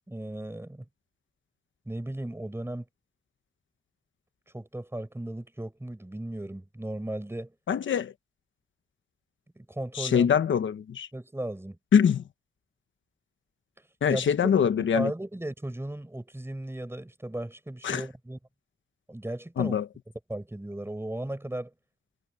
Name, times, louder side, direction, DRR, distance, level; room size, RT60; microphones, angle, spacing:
voice 1, 0.1-0.9 1.9-2.8 4.5-7.5 9.6-10.3 11.1-11.8 14.1-14.3 14.8-18.4 19.1-19.8 20.3-21.7, right 1 dB, 15° right, 5.7 m, -36 dB
voice 2, 7.7-8.1 9.9-11.1 11.9-12.2 14.0-15.1 17.8-18.0 19.6-19.9, left 7 dB, 85° left, 1.0 m, -23 dB
cardioid pair, 85°, 19 cm